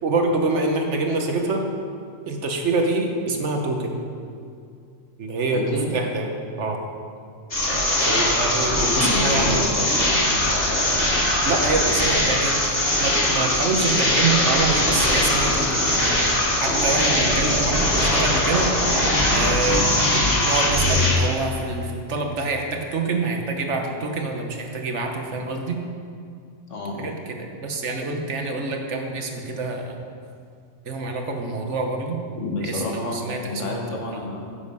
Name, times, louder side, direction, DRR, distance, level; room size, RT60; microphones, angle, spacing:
voice 1, 0.0-1.6 2.3-4.0 5.2-6.3 6.6-6.8 8.0-8.7 9.1-9.6 11.4-18.7 19.3-25.8 27.0-29.9 30.9-32.2 32.6-33.8 34.1-34.2, right 3 dB, 65° right, 3 dB, 1.4 m, -26 dB
voice 2, 5.5-5.9 8.8-10.3 26.7-27.2 32.3-34.4, left 2 dB, 75° left, 0 dB, 1.7 m, -29 dB
sound 1, 7.5-21.1, left 1 dB, 50° left, 2.7 m, -21 dB
10.0 x 7.1 x 5.4 m, 2.3 s
omnidirectional pair, 1.3 m